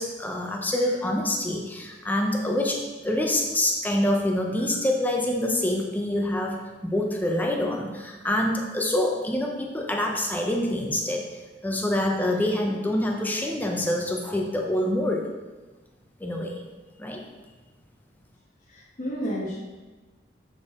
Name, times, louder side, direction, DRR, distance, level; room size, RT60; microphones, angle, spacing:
voice 1, 0.0-11.2 11.6-15.3 16.2-16.6 17.0-17.2, left 1 dB, 10° left, 1 dB, 0.7 m, -26 dB
voice 2, 18.7-19.6, equal, 45° left, -7 dB, 1.2 m, -33 dB
6.8 x 4.3 x 3.6 m, 1.2 s
head